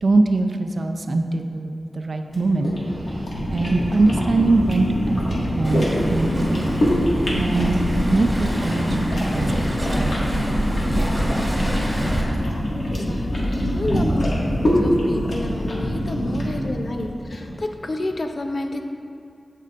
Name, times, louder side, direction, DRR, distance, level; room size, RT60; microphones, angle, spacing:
voice 1, 0.0-5.3 5.5-6.8 7.3-10.2 11.1-12.0 13.8-14.7 15.0-15.1 16.2-16.9, right 2 dB, 60° right, 5 dB, 0.5 m, -24 dB
sound 1, 2.3-17.5, equal, 70° left, 1.7 m, -24 dB
Waves surf, 5.6-12.2, right 1 dB, 15° right, 1.9 m, -28 dB
voice 2, 12.9-14.5 14.8-18.8, left 2 dB, 50° left, 5 dB, 0.6 m, -29 dB
15.5 x 5.5 x 2.5 m, 2.4 s
wide cardioid pair, 90°, 0 cm